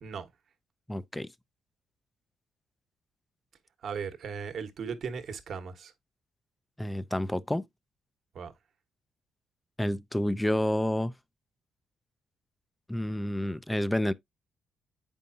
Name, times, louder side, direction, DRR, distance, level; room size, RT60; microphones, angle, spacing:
voice 1, 0.9-1.3 6.8-7.7 9.8-11.1 12.9-14.1, left 1 dB, 10° left, 0.5 m, -29 dB
voice 2, 3.8-5.9 8.3-8.5, right 6 dB, 60° right, 1.3 m, -37 dB
8.2 x 5.4 x 2.7 m
cardioid pair, 90°, 0 cm